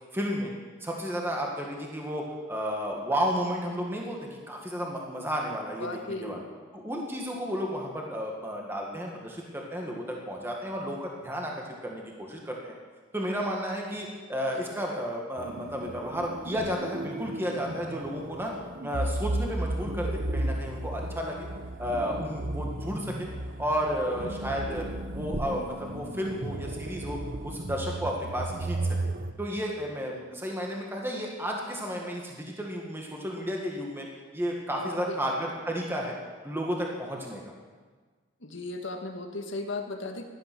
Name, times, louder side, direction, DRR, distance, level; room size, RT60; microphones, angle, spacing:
voice 1, 0.1-0.5 0.8-6.4 6.7-11.5 11.8-12.8 13.1-18.5 18.8-21.4 21.8-23.3 23.6-24.9 25.1-28.8 29.4-34.1 34.3-36.2 36.4-37.4, equal, 10° right, -1 dB, 1.7 m, -32 dB
voice 2, 5.8-6.5 34.7-35.2 38.4-40.3, left 2 dB, 65° left, 4 dB, 1.8 m, -36 dB
sound 1, 15.4-29.3, right 2 dB, 45° right, 0.7 m, -34 dB
17.0 x 11.0 x 6.2 m, 1.4 s
head